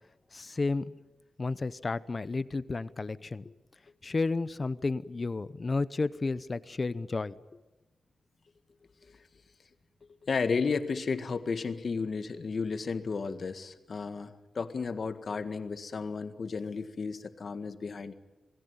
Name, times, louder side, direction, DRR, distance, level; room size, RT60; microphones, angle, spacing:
voice 1, 0.3-1.0 1.4-3.5 4.0-7.4, left 3 dB, 35° left, 16 dB, 0.8 m, -32 dB
voice 2, 10.2-18.1, left 5 dB, 55° left, 9 dB, 1.7 m, -33 dB
27.5 x 18.0 x 9.6 m, 1.1 s
wide cardioid pair, 100°, 0 cm